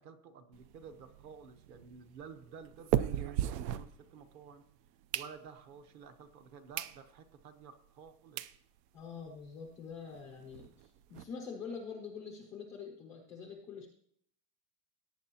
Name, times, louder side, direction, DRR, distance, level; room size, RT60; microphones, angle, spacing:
voice 1, 0.0-4.6 5.1-8.6, right 6 dB, 35° right, 9 dB, 0.9 m, -52 dB
sound 1, 0.5-4.5 4.9-5.8 6.3-6.4 6.7-7.0 7.4-7.5 8.1-8.2 8.4-8.6 9.0-9.1 9.3-9.4 9.7-9.8 10.1-11.2, right 11 dB, 75° right, 0.7 m, -37 dB
voice 2, 8.9-13.9, left 5 dB, 10° left, 0 dB, 0.3 m, -45 dB
18.0 x 8.9 x 2.9 m, 0.67 s
supercardioid pair, 170°, 48 cm